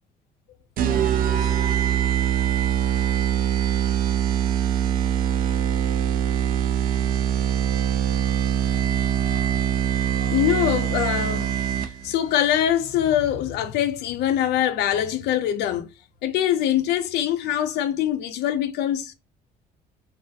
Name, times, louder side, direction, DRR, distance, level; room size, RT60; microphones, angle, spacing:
sound 1, 0.8-12.1, right 10 dB, 60° right, 0.4 m, -23 dB
voice 1, 9.2-9.6 10.1-15.9 16.2-19.1, left 11 dB, 80° left, 0.5 m, -24 dB
2.4 x 2.0 x 2.6 m
cardioid pair, 110°, 17 cm